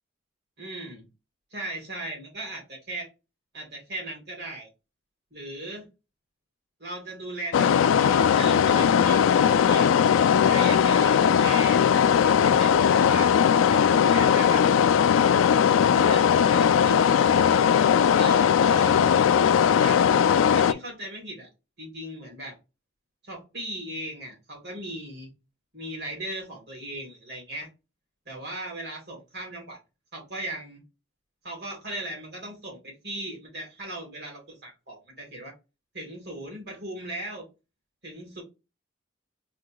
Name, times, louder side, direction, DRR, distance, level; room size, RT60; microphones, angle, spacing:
voice 1, 0.6-1.1 1.5-3.1 3.5-4.7 5.3-5.9 6.8-9.9 10.5-11.8 12.1-13.3 13.7-14.9 15.7-17.1 18.1-19.0 19.6-20.0 20.5-21.5 21.8-22.6 23.2-25.3 25.7-27.7 28.3-29.8 30.1-30.8 31.4-35.5 35.9-37.5 38.0-38.4, right 1 dB, 55° right, 0 dB, 2.6 m, -38 dB
sound 1, 7.5-20.7, left 8 dB, 85° left, 0.3 m, -19 dB
4.2 x 2.3 x 4.5 m, 0.28 s
head